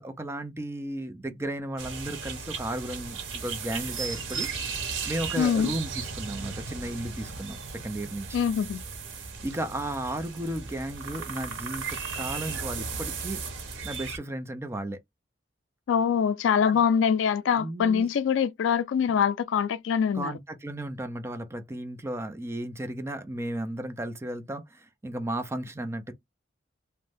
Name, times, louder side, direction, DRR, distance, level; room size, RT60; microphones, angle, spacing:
voice 1, 0.0-4.5 5.1-8.4 9.4-13.4 13.8-15.0 16.7-16.8 17.5-18.1 20.1-26.1, right 1 dB, 15° right, 0.5 m, -34 dB
sound 1, 1.8-14.2, right 5 dB, 90° right, 0.9 m, -36 dB
voice 2, 5.4-5.7 8.3-8.8 15.9-20.3, left 7 dB, 80° left, 0.3 m, -24 dB
2.6 x 2.1 x 3.3 m
head